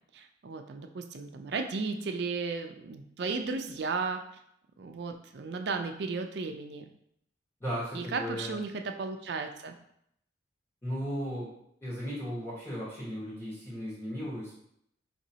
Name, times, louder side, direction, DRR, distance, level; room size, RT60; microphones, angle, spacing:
voice 1, 0.1-4.2 4.8-6.9 7.9-9.7, right 4 dB, 60° right, 5 dB, 0.4 m, -34 dB
voice 2, 7.6-8.5 10.8-11.5 11.8-14.5, equal, 15° left, -8 dB, 1.4 m, -36 dB
5.1 x 3.0 x 2.8 m, 0.73 s
head